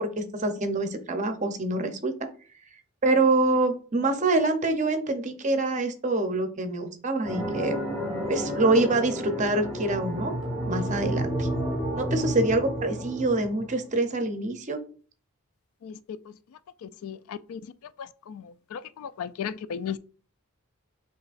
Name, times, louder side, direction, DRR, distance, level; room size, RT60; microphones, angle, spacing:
voice 1, 0.0-2.3 3.0-7.8 8.3-10.3 10.7-11.5 11.9-14.8, right 2 dB, 35° right, 0.6 m, -25 dB
sound 1, 7.2-14.0, equal, ahead, 1.9 m, -31 dB
voice 2, 16.8-17.6 18.0-20.0, left 7 dB, 85° left, 0.3 m, -36 dB
7.0 x 3.0 x 2.5 m
head